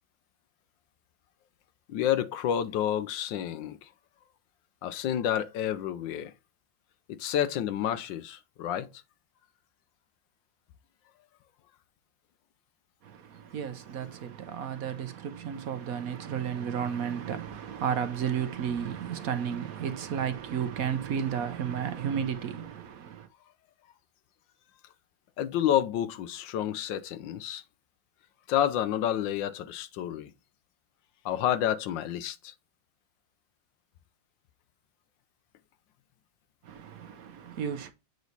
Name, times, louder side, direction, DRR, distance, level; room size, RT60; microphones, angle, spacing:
voice 1, 1.9-3.9 4.8-6.3 7.1-8.9 25.4-27.6 28.5-30.3 31.2-32.5, left 10 dB, 75° left, 1.2 m, -29 dB
voice 2, 13.0-23.3 36.6-37.9, right 8 dB, 60° right, 0.9 m, -33 dB
8.1 x 3.1 x 4.0 m
omnidirectional pair, 2.2 m